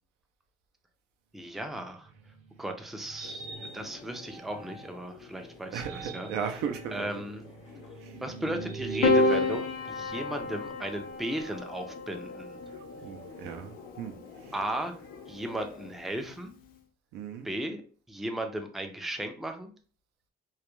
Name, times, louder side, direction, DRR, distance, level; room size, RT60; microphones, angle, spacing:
voice 1, 1.3-2.1 2.6-3.5 3.7-6.3 6.9-7.4 8.2-12.6 14.5-15.0 15.3-16.5 17.4-17.8 18.1-19.7, right 1 dB, ahead, 0.3 m, -36 dB
sound 1, 2.0-5.1 5.6-10.8, right 4 dB, 45° right, 0.6 m, -37 dB
sound 2, 3.2-15.9, left 4 dB, 85° left, 0.8 m, -49 dB
voice 2, 5.7-7.1 13.0-14.1 17.1-17.5, right 7 dB, 85° right, 0.4 m, -36 dB
Piano, 9.0-13.5 14.7-15.4, left 4 dB, 60° left, 0.5 m, -31 dB
2.3 x 2.1 x 2.9 m
cardioid pair, 110°, 17 cm